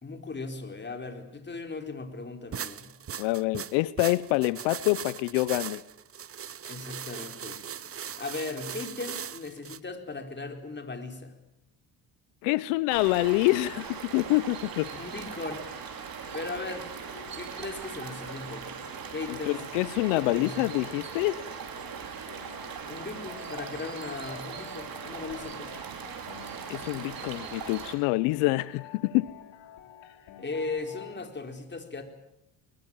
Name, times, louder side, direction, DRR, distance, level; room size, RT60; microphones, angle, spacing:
voice 1, 0.0-2.9 6.7-7.6 7.9-11.3 14.9-15.6 16.3-16.9 17.3-18.7 19.1-19.6 20.1-20.6 22.8-25.7 30.4-32.0, left 3 dB, 25° left, 6 dB, 4.4 m, -37 dB
sound 1, 2.5-9.8, right 8 dB, 30° right, 0.9 m, -39 dB
voice 2, 3.2-5.8 12.4-14.9 19.5-21.4 26.7-29.3, left 20 dB, 90° left, 18 dB, 0.8 m, -26 dB
sound 2, 12.9-27.9, right 7 dB, 50° right, 5.3 m, -40 dB
sound 3, 15.3-31.3, left 9 dB, 75° left, 3.4 m, -50 dB
22.5 x 21.5 x 9.0 m, 0.83 s
supercardioid pair, 95°, 45 cm